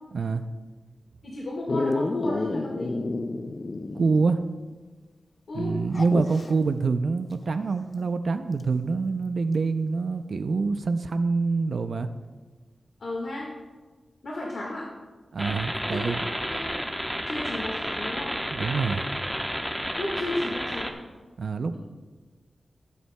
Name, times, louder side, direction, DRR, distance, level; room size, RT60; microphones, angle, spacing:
voice 1, 0.1-0.5 3.9-4.4 5.5-12.1 15.3-16.3 18.5-19.0 21.4-21.8, right 4 dB, 65° right, 9 dB, 0.4 m, -26 dB
voice 2, 1.2-3.0 5.5-5.7 13.0-13.5 14.2-14.9 15.9-16.0 16.5-16.8 17.3-18.3 20.0-20.9, left 1 dB, 70° left, -3 dB, 1.6 m, -33 dB
Dog, 1.7-4.4 4.7-4.8 5.9-6.5 8.6-8.7, left 2 dB, 40° left, 0.4 m, -30 dB
sound 1, 15.4-20.9, equal, ahead, 0.9 m, -31 dB
17.0 x 8.2 x 2.2 m, 1.3 s
wide cardioid pair, 115°, 0 cm